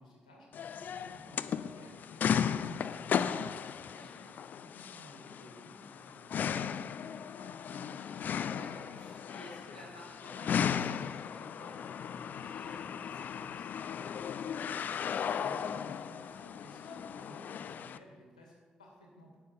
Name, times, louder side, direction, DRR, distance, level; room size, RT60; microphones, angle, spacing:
voice 1, 0.0-4.2 4.6-8.0 15.3-19.4, equal, 80° left, -1 dB, 2.0 m, -56 dB
sound 1, 0.5-18.0, left 8 dB, 50° left, 0.5 m, -36 dB
voice 2, 3.9-4.3 8.5-14.1, equal, 85° right, -6 dB, 2.9 m, -54 dB
11.5 x 8.5 x 5.3 m, 1.5 s
figure-of-eight pair, 40°, 4 cm